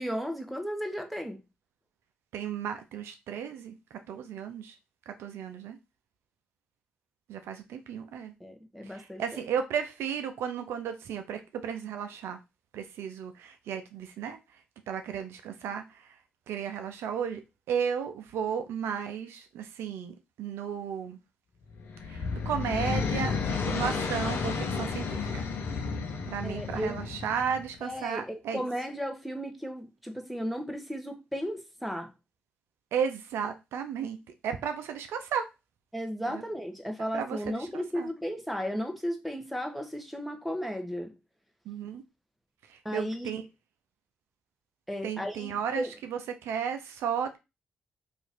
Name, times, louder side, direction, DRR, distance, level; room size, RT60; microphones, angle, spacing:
voice 1, 0.0-1.4 8.4-9.4 26.4-27.0 27.8-32.1 35.9-41.1 42.8-43.3 44.9-45.9, equal, ahead, 1.0 m, -34 dB
voice 2, 2.3-4.8 5.1-5.8 7.3-8.3 8.8-12.4 12.7-14.4 14.9-16.2 16.5-17.4 17.7-21.2 22.1-23.3 23.7-25.5 26.3-28.6 32.9-34.2 34.4-35.5 36.3-36.4 37.1-38.1 41.7-42.0 42.7-43.4 45.0-47.4, right 7 dB, 80° right, 0.5 m, -34 dB
sound 1, 21.7-27.8, left 5 dB, 70° left, 0.6 m, -32 dB
2.9 x 2.5 x 4.1 m
supercardioid pair, 45°, 4 cm